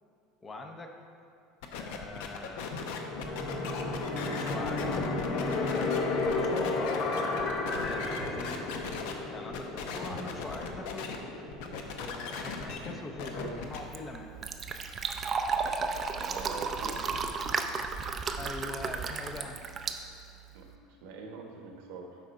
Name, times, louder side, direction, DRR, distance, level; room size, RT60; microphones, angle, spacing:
voice 1, 0.4-1.0 1.8-2.9 4.4-5.2 6.1-6.7 7.8-8.7 9.3-11.2 12.0-14.3 18.4-19.6, left 2 dB, 20° left, 4 dB, 0.6 m, -42 dB
sound 1, 1.6-9.1 9.5-11.2 11.5-13.8, left 5 dB, 75° left, 0.7 m, -39 dB
sound 2, 2.9-13.5, left 3 dB, 50° left, 0.9 m, -33 dB
voice 2, 13.2-13.6 15.7-17.0 20.5-22.2, right 4 dB, 75° right, 2 dB, 1.1 m, -45 dB
Fill (with liquid), 13.6-20.7, right 5 dB, 30° right, 0.4 m, -34 dB
8.3 x 3.9 x 5.3 m, 2.7 s
supercardioid pair, 140°, 0 cm